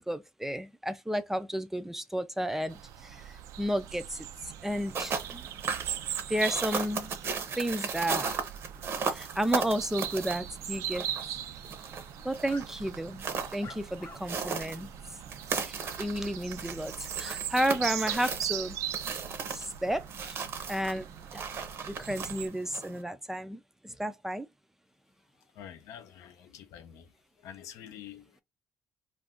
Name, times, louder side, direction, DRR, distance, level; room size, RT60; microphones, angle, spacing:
voice 1, 0.1-4.3 4.6-5.5 6.3-7.1 7.6-8.4 9.1-11.1 12.2-13.2 13.5-14.9 15.6-18.8 19.5-20.4 20.7-21.4 21.9-24.5, equal, 5° right, 0.3 m, -32 dB
sound 1, 2.7-22.5, right 11 dB, 80° right, 0.4 m, -40 dB
sound 2, 4.7-23.0, right 5 dB, 50° right, 0.7 m, -37 dB
sound 3, 12.4-12.7 13.6-14.2 14.8-14.9 17.2-17.4 17.7-17.9, left 4 dB, 45° left, 0.7 m, -48 dB
voice 2, 25.5-27.1 27.4-28.4, left 9 dB, 85° left, 0.6 m, -47 dB
2.4 x 2.2 x 3.6 m
cardioid pair, 130°, 5 cm